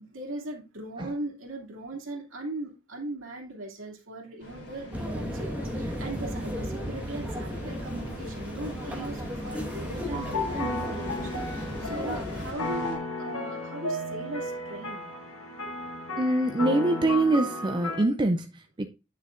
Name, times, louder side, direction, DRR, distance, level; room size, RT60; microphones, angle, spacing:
voice 1, 0.0-15.1, right 2 dB, 70° right, 2.5 m, -39 dB
sound 1, 4.4-13.0, equal, 55° left, 3.3 m, -43 dB
sound 2, 4.9-12.5, equal, 5° right, 1.5 m, -35 dB
sound 3, 10.1-18.0, left 2 dB, 75° left, 1.7 m, -34 dB
voice 2, 16.2-18.9, right 2 dB, 20° right, 0.5 m, -25 dB
9.4 x 6.5 x 2.5 m
head